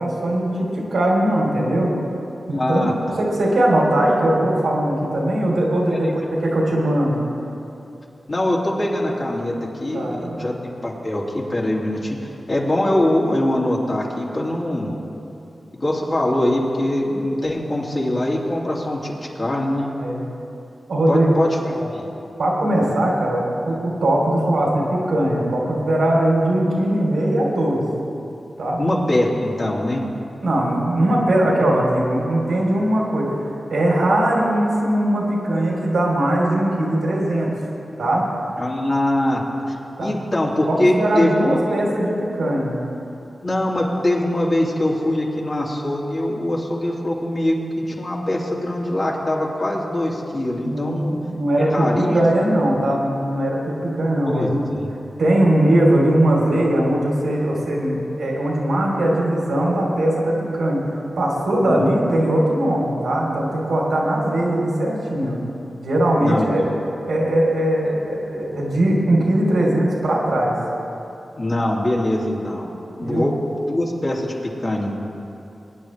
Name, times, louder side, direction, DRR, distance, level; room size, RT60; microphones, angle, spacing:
voice 1, 0.0-1.9 2.5-7.2 9.9-10.5 20.0-20.2 20.9-21.3 22.4-27.8 28.6-28.8 30.4-37.5 38.0-38.2 40.0-40.1 40.7-42.7 50.6-51.0 51.3-54.6 55.2-60.8 61.2-65.4 65.8-66.6 67.0-70.6 73.0-73.2, right 1 dB, 90° right, -3 dB, 3.0 m, -20 dB
voice 2, 2.5-3.2 6.0-6.3 8.3-9.5 9.8-10.5 10.8-14.9 15.7-19.9 21.1-22.1 28.8-30.0 38.6-39.4 39.7-41.6 43.4-51.2 51.6-52.2 54.3-54.9 61.7-62.0 66.2-66.5 71.4-72.7 73.0-75.0, left 1 dB, 45° left, -3 dB, 2.4 m, -23 dB
22.5 x 9.7 x 3.3 m, 2.9 s
cardioid pair, 55°, 0 cm